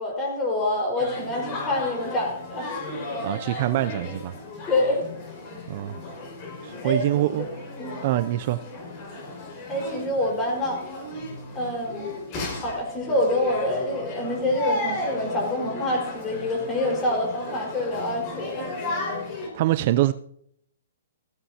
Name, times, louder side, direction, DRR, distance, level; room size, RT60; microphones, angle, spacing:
voice 1, 0.0-2.7 4.7-5.0 6.8-7.5 7.8-8.0 9.7-10.8 11.5-12.1 12.5-18.7, left 1 dB, 20° left, 0 dB, 4.8 m, -26 dB
sound 1, 1.0-19.5, left 2 dB, 35° left, 5.2 m, -35 dB
voice 2, 3.2-4.3 5.7-6.0 6.6-7.5 8.0-8.6 19.5-20.1, right 15 dB, 45° right, 13 dB, 0.4 m, -24 dB
15.0 x 15.0 x 2.8 m, 0.69 s
hypercardioid pair, 145°, 0 cm